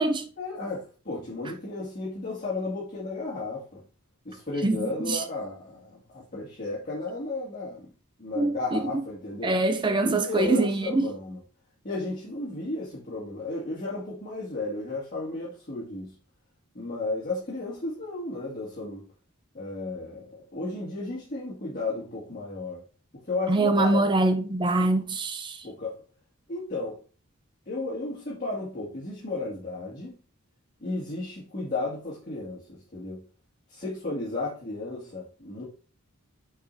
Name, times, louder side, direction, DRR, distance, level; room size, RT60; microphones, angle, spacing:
voice 1, 0.4-3.8 4.2-7.9 8.2-9.6 10.0-11.4 11.8-16.1 16.7-19.0 19.5-22.8 23.2-24.4 24.7-24.9 25.6-25.9 26.5-27.0 27.7-30.2 30.8-33.2 33.7-35.6, left 2 dB, 40° left, 2.2 m, -34 dB
voice 2, 4.6-5.2 8.4-8.8 9.4-11.1 23.5-25.6, right 2 dB, 20° right, 0.5 m, -24 dB
9.1 x 5.0 x 2.7 m
head